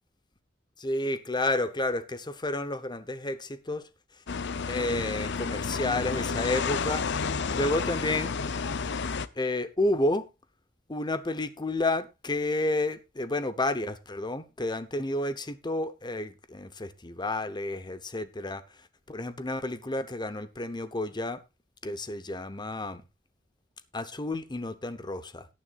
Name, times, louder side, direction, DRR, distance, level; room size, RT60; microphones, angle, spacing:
voice 1, 0.8-3.9 4.7-8.4 9.4-10.3 10.9-18.6 19.1-21.4 21.8-23.0 23.9-25.5, left 2 dB, 25° left, 0.9 m, -31 dB
sound 1, 4.3-9.3, left 5 dB, 60° left, 0.7 m, -31 dB
18.0 x 9.6 x 2.5 m
head